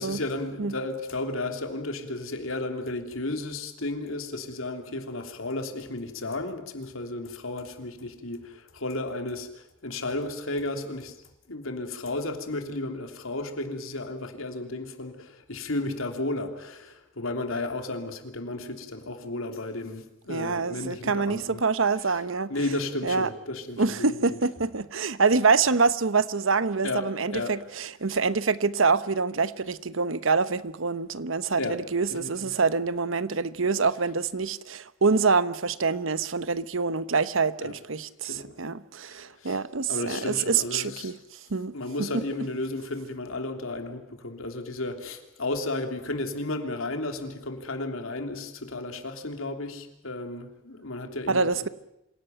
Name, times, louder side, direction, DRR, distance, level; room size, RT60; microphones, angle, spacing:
voice 1, 0.0-11.2 11.5-21.6 22.1-22.2 22.5-24.0 24.3-24.4 26.8-27.5 31.6-31.8 32.1-32.5 37.6-37.7 38.2-38.6 39.1-39.6 39.9-41.2 41.7-51.7, left 2 dB, 90° left, 3.2 m, -33 dB
voice 2, 20.3-22.5 23.0-23.3 23.8-41.1 41.5-41.7 42.1-42.2 51.3-51.7, right 4 dB, 80° right, 1.0 m, -26 dB
26.5 x 17.5 x 9.3 m
head